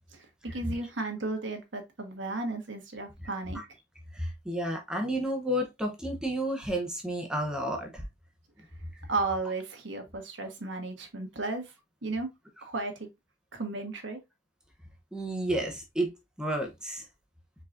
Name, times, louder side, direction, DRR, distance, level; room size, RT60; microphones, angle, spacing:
voice 1, 0.5-3.6 9.1-11.7 12.0-12.3 12.6-13.1 13.5-14.2, right 3 dB, 85° right, 1.2 m, -34 dB
voice 2, 4.1-8.1 15.1-16.1 16.4-17.1, right 1 dB, 5° right, 0.8 m, -31 dB
4.6 x 3.9 x 2.5 m
head